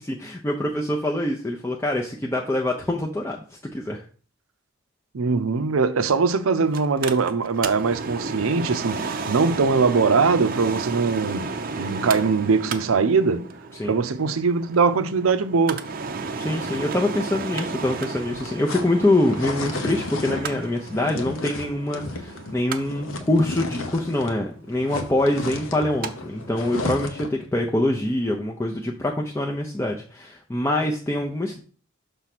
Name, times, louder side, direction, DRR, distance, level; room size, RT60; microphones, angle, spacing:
voice 1, 0.0-3.4 3.7-4.0 13.8-13.9 16.4-31.6, left 1 dB, 10° left, 0.5 m, -25 dB
voice 2, 5.1-13.5 13.8-15.8, right 4 dB, 90° right, 0.6 m, -21 dB
Mechanical fan, 6.7-26.1 26.4-26.5, right 4 dB, 45° right, 0.6 m, -33 dB
sound 1, 18.1-24.4 24.7-27.4, left 2 dB, 80° left, 1.0 m, -33 dB
6.1 x 3.3 x 5.9 m
head